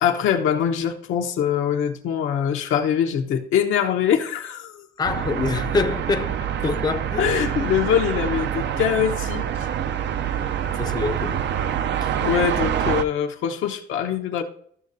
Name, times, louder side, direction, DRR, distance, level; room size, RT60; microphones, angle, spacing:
voice 1, 0.0-4.9 7.2-9.5 12.2-14.4, left 8 dB, 85° left, 0.9 m, -23 dB
voice 2, 5.0-7.3 10.3-10.4 10.8-11.4 12.0-12.2, left 4 dB, 20° left, 0.5 m, -26 dB
sound 1, 5.0-13.0, right 9 dB, 65° right, 0.5 m, -26 dB
13.0 x 6.5 x 2.7 m
cardioid pair, 90°, 20 cm